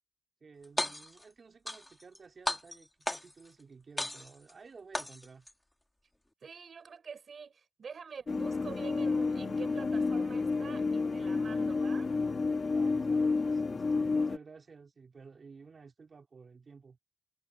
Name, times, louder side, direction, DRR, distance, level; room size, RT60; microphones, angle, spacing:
voice 1, 0.4-5.5 12.6-17.0, right 5 dB, 65° right, 3.2 m, -53 dB
sound 1, 0.6-1.2 1.7-2.2 2.5-3.5 4.0-4.5 4.9-5.5, left 1 dB, 15° left, 1.9 m, -35 dB
voice 2, 6.4-12.1, right 6 dB, 85° right, 4.0 m, -46 dB
sound 2, 8.3-14.4, left 4 dB, 55° left, 1.3 m, -30 dB
wide cardioid pair, 95°, 0 cm